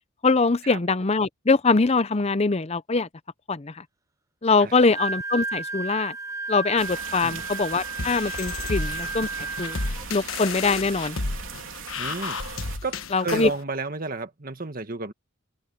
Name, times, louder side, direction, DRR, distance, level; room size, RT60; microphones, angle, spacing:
voice 1, 0.2-3.1 3.5-3.8 4.4-6.2 6.5-9.8 10.1-11.2 13.1-13.5, left 3 dB, 30° left, 0.6 m, -23 dB
Wind instrument woodwind instrument, 4.7-10.1, right 3 dB, 15° right, 0.6 m, -33 dB
sound 1, 6.8-12.8, right 6 dB, 70° right, 3.4 m, -39 dB
sound 2, 8.0-13.6, left 3 dB, 75° left, 1.4 m, -32 dB
voice 2, 11.9-12.4 12.8-15.1, right 3 dB, 45° right, 1.6 m, -32 dB
head